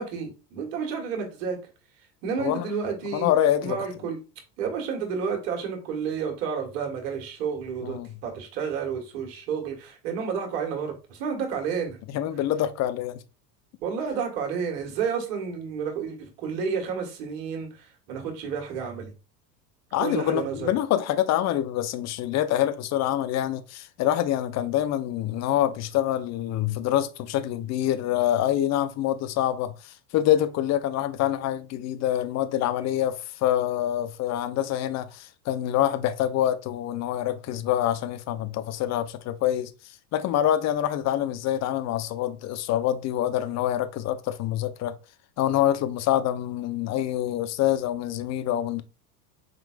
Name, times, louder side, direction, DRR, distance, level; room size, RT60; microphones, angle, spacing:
voice 1, 0.0-1.6 2.2-3.3 3.6-4.2 4.6-12.0 13.8-19.1 20.0-20.8, right 6 dB, 65° right, 1.7 m, -31 dB
voice 2, 3.1-3.8 7.8-8.1 12.1-13.2 19.9-39.7 40.1-44.9 45.4-48.8, left 12 dB, 35° left, 0.5 m, -26 dB
4.6 x 3.7 x 2.5 m
hypercardioid pair, 85°, 50 cm